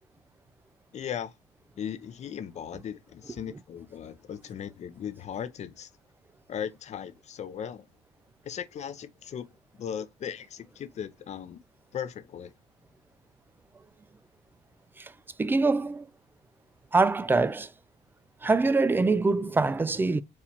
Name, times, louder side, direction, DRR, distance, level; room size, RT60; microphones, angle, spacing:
voice 1, 0.9-1.3 1.8-5.9 6.5-7.9 8.4-9.5 9.8-11.6 11.9-12.5, left 8 dB, 45° left, 0.5 m, -37 dB
voice 2, 15.4-16.0 16.9-17.7 18.4-20.2, right 3 dB, 10° right, 0.3 m, -24 dB
4.2 x 2.4 x 4.3 m
cardioid pair, 110°, 17 cm